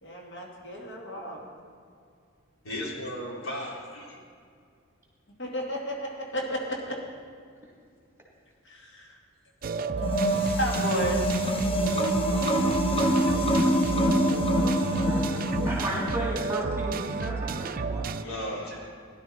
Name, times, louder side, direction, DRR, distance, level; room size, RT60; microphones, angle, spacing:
voice 1, 0.0-1.5 5.4-7.0 8.6-9.2 10.0-11.5, equal, 60° left, -2 dB, 2.2 m, -33 dB
voice 2, 2.6-4.2 18.1-18.9, equal, 80° left, -3 dB, 3.3 m, -35 dB
sound 1, 9.6-18.2, right 4 dB, 45° right, 0.4 m, -32 dB
sound 2, 10.0-16.3, equal, 25° left, 1.0 m, -25 dB
voice 3, 15.0-15.4 15.6-18.4, right 1 dB, 10° right, -3 dB, 2.9 m, -34 dB
17.5 x 11.0 x 4.3 m, 2.3 s
head